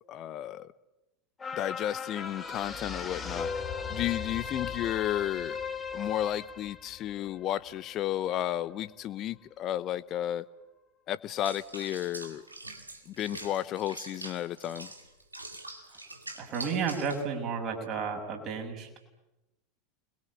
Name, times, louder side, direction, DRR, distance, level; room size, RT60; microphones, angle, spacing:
voice 1, 0.1-0.7 1.5-3.5 3.9-5.6 5.9-10.4 11.1-12.4 13.1-14.9, left 12 dB, 40° left, 17 dB, 0.9 m, -33 dB
sound 1, 1.4-8.0 8.5-8.6, left 6 dB, 20° left, 3.2 m, -37 dB
Water / Bathtub (filling or washing), 11.4-17.2, right 2 dB, 85° right, 2.3 m, -44 dB
voice 2, 16.4-19.0, right 5 dB, 40° right, 3 dB, 6.4 m, -32 dB
28.5 x 22.0 x 8.5 m, 0.97 s
figure-of-eight pair, 80°, 0 cm